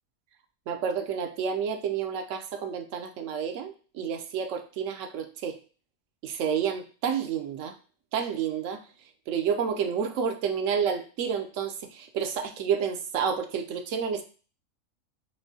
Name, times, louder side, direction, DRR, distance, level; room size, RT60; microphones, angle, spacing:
voice 1, 0.7-5.6 6.2-7.7 8.1-8.8 9.3-14.2, right 7 dB, 70° right, 7 dB, 0.9 m, -30 dB
5.4 x 2.6 x 2.6 m, 0.38 s
omnidirectional pair, 1.4 m